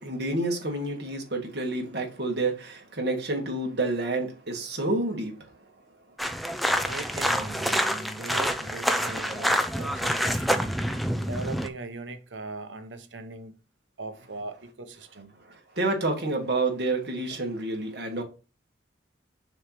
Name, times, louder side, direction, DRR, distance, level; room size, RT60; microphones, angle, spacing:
voice 1, 0.0-5.3 15.5-18.2, right 2 dB, 60° right, 2.0 m, -29 dB
sound 1, 6.2-11.7, equal, ahead, 0.5 m, -27 dB
voice 2, 6.8-10.8 11.2-13.5 14.0-15.3, right 3 dB, 80° right, 1.0 m, -39 dB
6.5 x 3.2 x 5.9 m
head